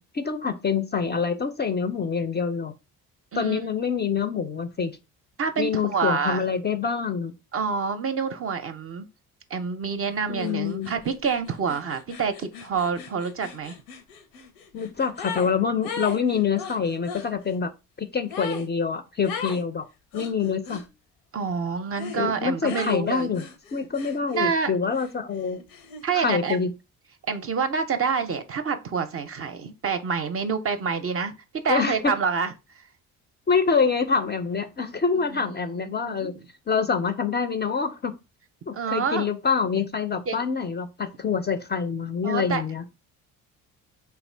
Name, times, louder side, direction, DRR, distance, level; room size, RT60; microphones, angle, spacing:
voice 1, 0.0-2.7 3.4-4.9 5.6-7.3 10.3-10.9 14.7-17.7 18.0-19.9 20.1-20.8 22.2-23.4 23.7-25.6 26.1-26.7 31.7-32.1 33.5-36.4 36.7-38.1 38.7-42.8, left 5 dB, 25° left, 0.4 m, -26 dB
voice 2, 5.4-6.4 7.5-9.1 9.5-13.8 21.3-23.3 24.3-24.7 26.0-26.6 27.3-32.5 35.3-36.4 38.7-39.3 40.3-40.4 42.2-42.6, right 5 dB, 35° right, 0.5 m, -27 dB
sound 1, 10.4-10.5 10.8-15.5 15.8-17.3 18.3-18.7 19.2-19.6 20.1-20.9 21.9-22.2 22.6-24.5 24.9-26.3, left 5 dB, 85° left, 0.8 m, -38 dB
3.5 x 2.4 x 3.2 m
supercardioid pair, 65°, 40 cm